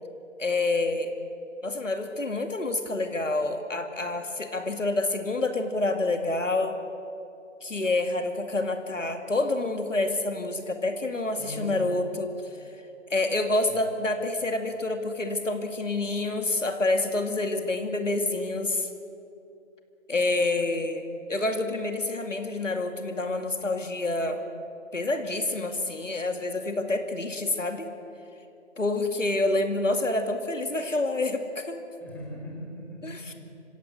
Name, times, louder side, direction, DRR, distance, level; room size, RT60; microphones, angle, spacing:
voice 1, 0.4-1.1 1.6-6.8 7.6-12.3 13.1-18.9 20.1-24.4 24.9-27.9 28.8-31.8 33.0-33.3, left 2 dB, 80° left, 6 dB, 2.5 m, -28 dB
voice 2, 11.4-12.0 13.6-13.8 32.0-33.3, equal, 5° left, -4 dB, 3.4 m, -40 dB
25.5 x 17.0 x 7.9 m, 2.7 s
figure-of-eight pair, 150°, 37 cm